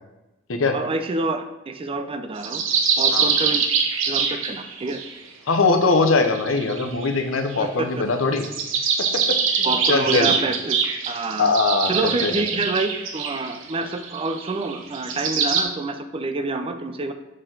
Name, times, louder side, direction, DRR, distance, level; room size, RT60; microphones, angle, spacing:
voice 1, 0.7-2.6 3.0-3.7 4.1-5.0 7.6-7.9 9.6-10.8 11.1-11.5 11.9-17.1, right 3 dB, 30° right, 8 dB, 0.4 m, -27 dB
sound 1, 2.4-5.1 5.9-7.6 8.3-15.6, right 6 dB, 75° right, 0.7 m, -24 dB
voice 2, 5.5-8.4 9.5-10.3 11.4-11.9 12.2-12.3, left 3 dB, 85° left, 6 dB, 0.7 m, -21 dB
6.2 x 4.3 x 3.8 m, 0.97 s
head